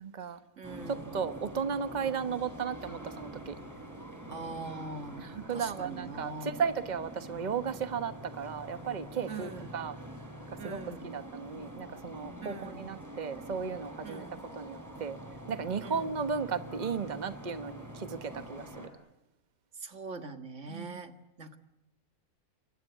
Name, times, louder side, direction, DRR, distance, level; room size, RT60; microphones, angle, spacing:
voice 1, 0.0-0.4 1.1-3.6 5.2-9.9 10.5-10.8 11.0-14.2 14.5-15.2 15.5-18.9 20.7-21.0, right 6 dB, 35° right, 11 dB, 1.2 m, -35 dB
sound 1, 0.6-18.9, right 1 dB, 10° right, 5.1 m, -45 dB
voice 2, 0.6-1.1 4.3-5.3 5.5-6.6 9.3-9.8 10.6-11.1 12.4-12.9 14.0-14.4 15.8-16.2 19.7-21.6, right 3 dB, 55° right, 8 dB, 2.2 m, -42 dB
28.5 x 24.5 x 8.3 m, 0.95 s
omnidirectional pair, 1.5 m